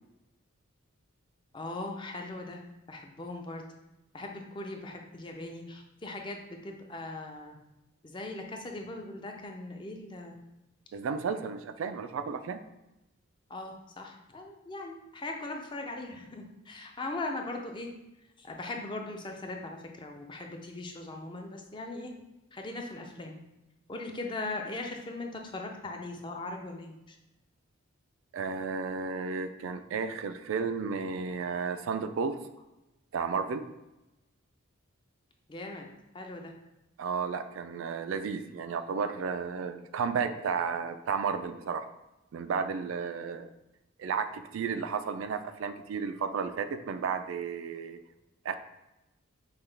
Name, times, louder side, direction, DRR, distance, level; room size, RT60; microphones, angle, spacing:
voice 1, 1.5-2.6 2.9-3.6 4.1-7.6 8.0-10.4 13.5-17.9 18.4-22.1 22.5-23.4 23.9-27.2 35.5-35.9 36.1-36.5, left 2 dB, 25° left, 2 dB, 0.4 m, -39 dB
voice 2, 10.9-12.6 28.3-32.4 33.1-33.7 37.0-41.9 42.3-43.5 44.0-48.0 48.4-48.6, right 5 dB, 70° right, 9 dB, 0.3 m, -33 dB
5.6 x 2.2 x 3.3 m, 0.96 s
head